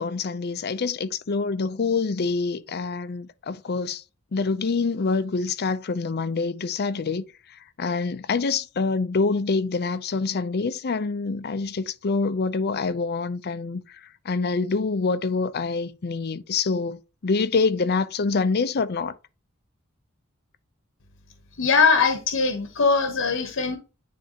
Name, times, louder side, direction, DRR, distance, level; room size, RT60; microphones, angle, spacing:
voice 1, 0.0-4.0 4.3-19.1, left 4 dB, 50° left, 0.5 m, -26 dB
voice 2, 21.6-23.8, left 5 dB, 65° left, 1.0 m, -21 dB
10.0 x 3.4 x 2.8 m
head